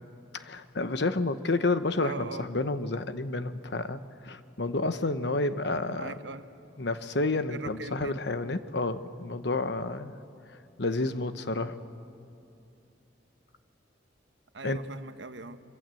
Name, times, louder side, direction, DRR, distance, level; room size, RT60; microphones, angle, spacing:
voice 1, 0.3-6.1 6.8-10.1 10.8-11.8 14.6-14.8, left 2 dB, 65° left, 10 dB, 1.0 m, -30 dB
voice 2, 2.0-2.5 5.9-6.5 7.5-8.2 14.5-15.6, right 3 dB, 75° right, 10 dB, 1.0 m, -41 dB
25.5 x 24.5 x 7.7 m, 2.6 s
head